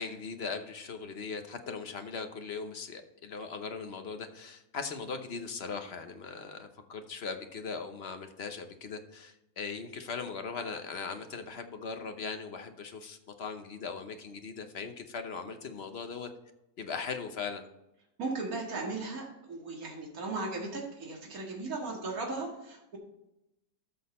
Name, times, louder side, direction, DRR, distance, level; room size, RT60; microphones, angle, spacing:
voice 1, 0.0-16.3 16.8-17.6, left 5 dB, 45° left, 7 dB, 1.1 m, -39 dB
voice 2, 18.2-23.0, right 3 dB, 65° right, -2 dB, 2.3 m, -37 dB
13.0 x 6.4 x 4.3 m, 0.89 s
omnidirectional pair, 1.7 m